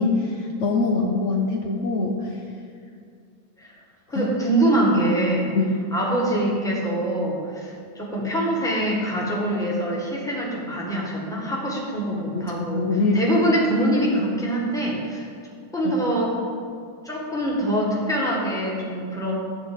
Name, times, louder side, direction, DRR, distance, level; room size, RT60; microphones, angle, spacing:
voice 1, 0.0-2.3 4.1-4.3 5.5-5.8 12.3-13.2 15.8-15.9, left 3 dB, 80° left, 0 dB, 0.6 m, -23 dB
voice 2, 4.1-5.5 5.9-15.3 15.7-16.4 17.0-19.4, right 1 dB, ahead, -4 dB, 1.3 m, -24 dB
11.0 x 4.1 x 7.7 m, 2.3 s
omnidirectional pair, 2.2 m